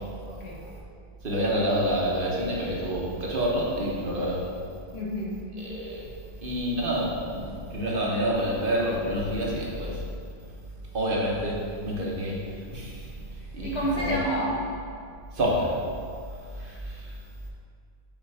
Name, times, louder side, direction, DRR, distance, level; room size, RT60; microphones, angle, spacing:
voice 1, 0.3-0.6 4.9-5.4 13.4-14.6, equal, 85° left, -4 dB, 1.5 m, -30 dB
voice 2, 1.2-4.4 5.7-6.1 6.4-10.0 10.9-12.4 12.7-13.0 13.5-13.8 14.1-14.2 15.3-15.8 16.6-17.0, equal, 55° right, -4 dB, 1.2 m, -27 dB
5.5 x 4.4 x 4.9 m, 2.3 s
omnidirectional pair, 1.1 m